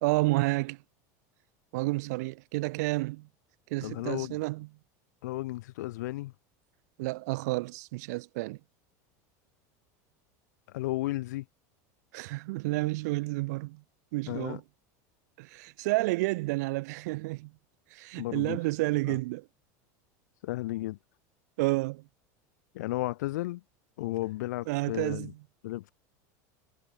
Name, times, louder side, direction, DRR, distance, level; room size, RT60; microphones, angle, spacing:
voice 1, 0.0-0.8 1.7-3.3 3.7-4.7 7.0-8.6 12.1-13.8 14.1-14.6 15.4-17.5 17.9-19.4 21.6-22.0 24.7-25.3, right 22 dB, 70° right, 1.3 m, -30 dB
voice 2, 3.8-4.4 5.2-6.3 10.7-11.5 14.3-14.6 18.2-18.6 19.0-19.2 20.4-21.0 22.7-23.6 24.0-25.3 25.6-25.9, left 17 dB, 85° left, 2.3 m, -34 dB
supercardioid pair, 155°, 9 cm